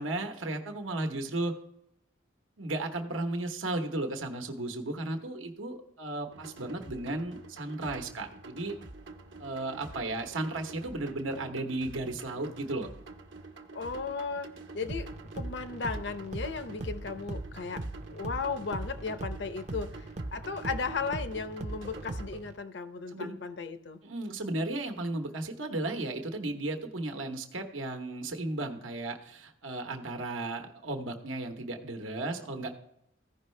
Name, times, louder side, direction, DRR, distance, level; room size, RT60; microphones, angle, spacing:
voice 1, 0.0-1.5 2.6-8.7 9.4-12.9 23.1-23.3 24.0-32.7, right 2 dB, 85° right, 4 dB, 1.1 m, -34 dB
sound 1, 6.3-22.3, right 3 dB, 70° right, 1.0 m, -48 dB
voice 2, 13.7-14.5 14.7-15.1 15.3-17.8 18.1-20.0 20.3-24.0, left 4 dB, 60° left, 10 dB, 0.7 m, -35 dB
sound 2, 14.9-22.6, right 2 dB, 35° right, 0.5 m, -40 dB
15.5 x 5.5 x 3.2 m, 0.80 s
head